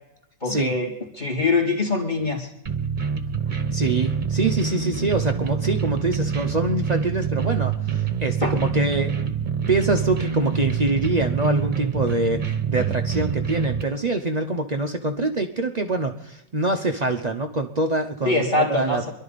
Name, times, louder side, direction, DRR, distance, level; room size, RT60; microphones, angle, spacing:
voice 1, 0.4-2.5 8.4-8.6 18.2-19.1, left 3 dB, 25° left, 0 dB, 2.5 m, -23 dB
sound 1, 2.7-13.8, right 7 dB, 30° right, 1.0 m, -26 dB
voice 2, 3.7-9.3 9.7-19.1, right 2 dB, 75° right, 3 dB, 0.3 m, -25 dB
26.0 x 11.5 x 4.1 m, 0.84 s
omnidirectional pair, 2.1 m